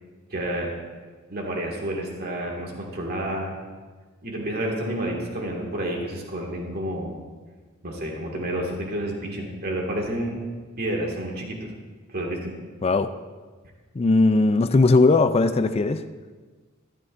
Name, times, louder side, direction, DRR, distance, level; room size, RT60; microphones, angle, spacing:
voice 1, 0.3-0.7 1.3-3.5 4.2-7.1 7.8-10.4 10.8-11.7 12.1-12.5, right 1 dB, 50° right, 0 dB, 1.9 m, -29 dB
voice 2, 12.8-13.1 14.0-16.0, left 3 dB, 30° left, 10 dB, 0.4 m, -18 dB
14.0 x 12.5 x 2.5 m, 1.4 s
head